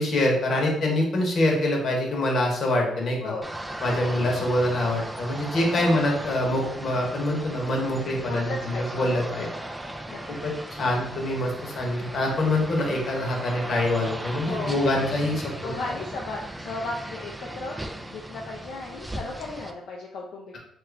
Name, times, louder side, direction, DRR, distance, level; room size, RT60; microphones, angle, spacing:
voice 1, 0.0-3.3 3.8-9.5 10.4-15.7, left 1 dB, 55° left, 0 dB, 1.0 m, -25 dB
sound 1, 3.4-19.7, right 1 dB, 10° right, 0.3 m, -37 dB
voice 2, 3.9-4.2 5.7-6.1 8.3-9.8 10.1-10.5 10.8-10.9 14.5-15.1 15.6-17.8 18.1-20.5, left 3 dB, 75° left, -2 dB, 0.4 m, -36 dB
3.0 x 2.4 x 3.3 m, 0.75 s
cardioid pair, 90°, 0 cm